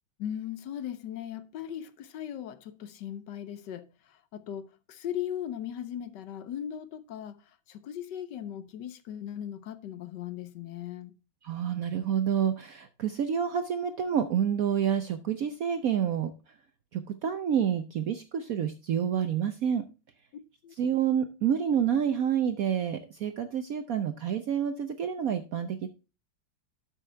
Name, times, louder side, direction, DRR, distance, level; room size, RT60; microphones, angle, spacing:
voice 1, 0.2-11.2 20.6-20.7, left 10 dB, 65° left, 1.3 m, -38 dB
voice 2, 11.4-16.3 16.9-19.8 20.8-25.9, right 8 dB, 65° right, 0.9 m, -28 dB
12.0 x 6.3 x 3.3 m
omnidirectional pair, 2.2 m